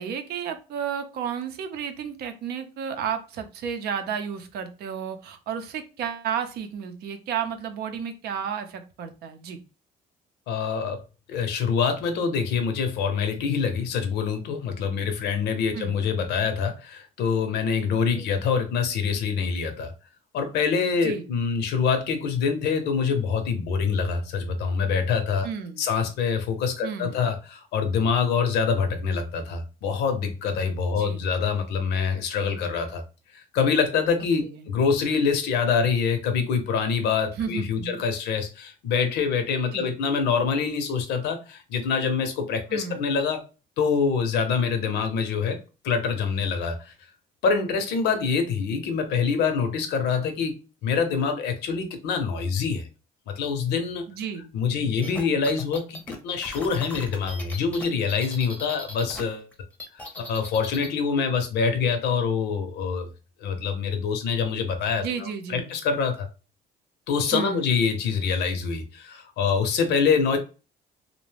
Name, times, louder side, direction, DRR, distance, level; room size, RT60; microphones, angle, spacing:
voice 1, 0.0-9.6 15.7-16.0 18.1-18.4 21.0-21.3 25.4-25.9 26.8-27.4 30.9-31.3 34.4-34.7 37.4-38.0 39.7-39.9 42.7-43.2 54.1-54.5 65.0-65.7 67.3-67.7, right 7 dB, 70° right, 8 dB, 0.6 m, -32 dB
voice 2, 10.5-11.0 11.3-19.9 20.3-25.5 25.8-33.0 33.3-43.4 43.8-45.6 45.8-46.9 47.4-52.9 53.3-54.0 54.5-59.5 59.9-63.1 63.4-66.3 67.1-70.4, left 6 dB, 80° left, 7 dB, 0.7 m, -25 dB
sound 1, 55.0-59.2 59.5-60.9, left 1 dB, 10° left, 0.6 m, -39 dB
2.5 x 2.1 x 3.2 m, 0.33 s
cardioid pair, 110°, 17 cm